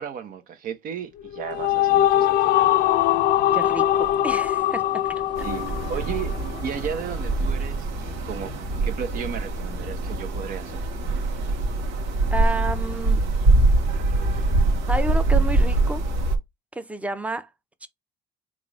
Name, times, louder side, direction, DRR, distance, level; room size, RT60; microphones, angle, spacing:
voice 1, 0.0-2.7 5.4-7.9 8.2-8.5 8.8-10.9, right 8 dB, 60° right, 0.9 m, -34 dB
sound 1, 1.2-6.7, left 13 dB, 65° left, 0.4 m, -22 dB
sound 2, 1.5-7.5, right 3 dB, 30° right, 1.0 m, -38 dB
voice 2, 3.5-4.8 5.1-5.2 12.3-13.2 14.9-16.0 16.7-17.5 17.8-17.9, right 2 dB, 10° right, 0.6 m, -30 dB
sound 3, 5.3-16.4, right 2 dB, 90° right, 1.1 m, -23 dB
3.7 x 2.6 x 3.2 m
cardioid pair, 100°, 17 cm